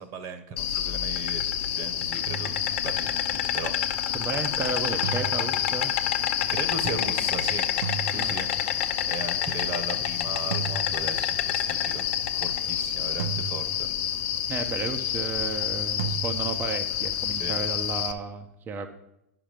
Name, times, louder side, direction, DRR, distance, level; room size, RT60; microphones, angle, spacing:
voice 1, 0.0-2.6 2.8-3.7 6.5-7.8 8.0-8.7 9.1-12.1 12.4-13.9 17.4-17.5, right 4 dB, 45° right, 10 dB, 1.2 m, -37 dB
Insect, 0.6-18.1, left 10 dB, 60° left, 0.8 m, -28 dB
sound 1, 2.3-3.3 5.0-6.2 7.8-9.0 10.5-11.7 13.2-14.3 16.0-16.9, right 9 dB, 75° right, 0.6 m, -37 dB
voice 2, 4.1-5.9 8.1-8.4 9.0-9.1 14.5-18.9, right 5 dB, 25° right, 7 dB, 0.7 m, -33 dB
10.0 x 6.0 x 5.1 m, 0.84 s
hypercardioid pair, 110°, 8 cm